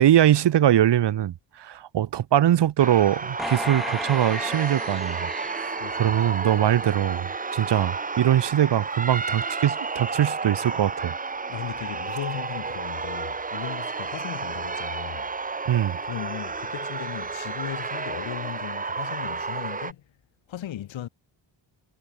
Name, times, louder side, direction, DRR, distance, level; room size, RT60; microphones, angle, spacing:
voice 1, 0.0-11.1 15.7-16.0, right 11 dB, 65° right, 1.6 m, -22 dB
sound 1, 2.8-19.9, right 4 dB, 20° right, 1.1 m, -31 dB
sound 2, 3.4-6.8 7.3-7.4, equal, ahead, 2.8 m, -34 dB
voice 2, 5.8-6.2 11.5-15.3 16.0-20.0 20.5-21.1, left 11 dB, 75° left, 2.7 m, -37 dB
wide cardioid pair, 165°, 46 cm